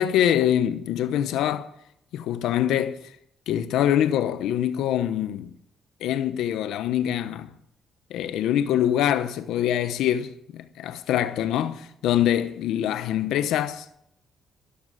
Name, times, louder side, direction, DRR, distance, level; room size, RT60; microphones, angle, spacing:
voice 1, 0.0-1.7 2.1-3.0 3.5-5.5 6.0-7.5 8.1-13.9, left 11 dB, 85° left, 0.9 m, -24 dB
12.5 x 11.5 x 8.4 m
cardioid pair, 90°, 0 cm